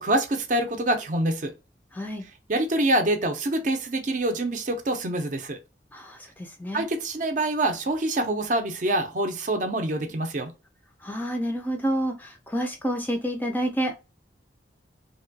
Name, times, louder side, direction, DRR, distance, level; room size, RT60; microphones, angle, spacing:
voice 1, 0.0-1.5 2.5-5.6 6.7-10.5, right 1 dB, 45° right, 0.5 m, -25 dB
voice 2, 1.9-2.2 5.9-6.8 11.0-13.9, equal, 10° left, 0.4 m, -29 dB
2.8 x 2.2 x 2.7 m
head